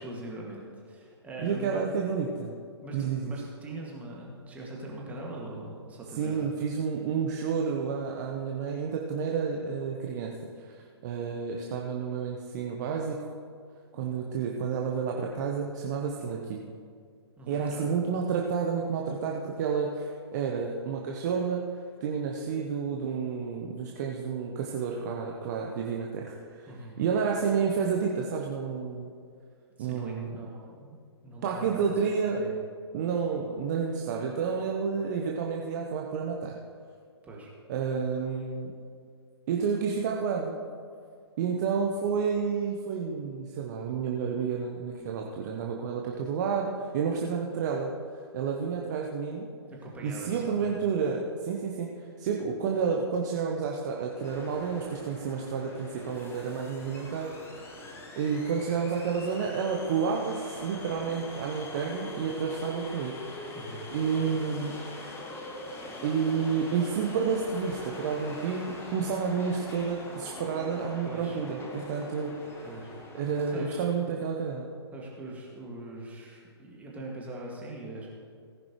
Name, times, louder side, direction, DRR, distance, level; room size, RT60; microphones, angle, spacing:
voice 1, 0.0-1.8 2.8-6.5 17.4-17.9 26.7-27.0 29.8-31.9 32.4-32.5 37.2-37.5 49.7-50.7 63.5-63.9 71.0-71.4 71.8-72.1 72.6-73.0 73.5-73.9 74.9-78.1, right 1 dB, 10° right, -3 dB, 2.3 m, -42 dB
voice 2, 1.4-2.5 2.9-3.3 6.2-10.3 10.6-13.3 13.9-16.7 17.5-21.6 22.0-26.7 27.0-29.1 29.8-30.4 31.4-32.4 32.9-36.5 37.7-38.7 39.5-40.6 41.4-47.9 48.3-49.5 50.0-51.9 52.2-57.7 58.1-63.5 63.9-64.7 66.0-72.3 73.1-74.7, right 6 dB, 40° right, 0 dB, 1.1 m, -30 dB
sound 1, 54.1-74.0, left 1 dB, 15° left, 1.6 m, -43 dB
18.5 x 10.5 x 3.2 m, 2.2 s
figure-of-eight pair, 120°, 14 cm